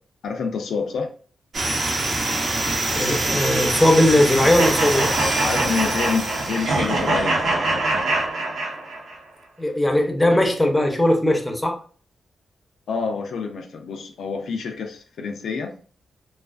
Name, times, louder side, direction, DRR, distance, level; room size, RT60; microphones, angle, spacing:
voice 1, 0.2-1.1 5.4-7.4 12.9-15.7, left 5 dB, 85° left, 3 dB, 0.4 m, -27 dB
sound 1, 1.5-7.2, right 2 dB, 55° right, 0.7 m, -25 dB
voice 2, 3.0-5.1 9.6-11.8, left 1 dB, 10° left, 3 dB, 0.6 m, -19 dB
sound 2, 4.6-9.2, right 2 dB, 90° right, 0.8 m, -24 dB
2.3 x 2.3 x 2.3 m, 0.42 s
cardioid pair, 75°, 0 cm